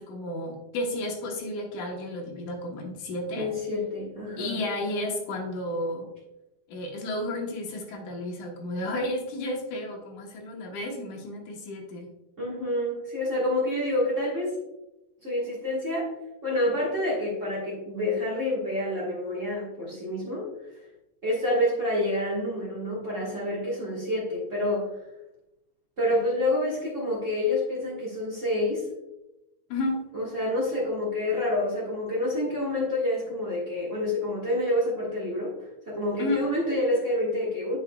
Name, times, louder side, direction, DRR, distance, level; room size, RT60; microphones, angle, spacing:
voice 1, 0.0-3.5 4.4-6.1 6.7-12.1 29.7-30.0 36.2-36.5, left 1 dB, 70° left, 1 dB, 2.4 m, -32 dB
voice 2, 3.3-4.6 12.4-14.6 15.2-16.1 16.4-20.5 21.2-24.9 26.0-28.9 30.1-35.5 35.9-37.8, left 1 dB, 85° right, -6 dB, 0.6 m, -28 dB
8.8 x 5.9 x 2.2 m, 0.93 s
omnidirectional pair, 4.0 m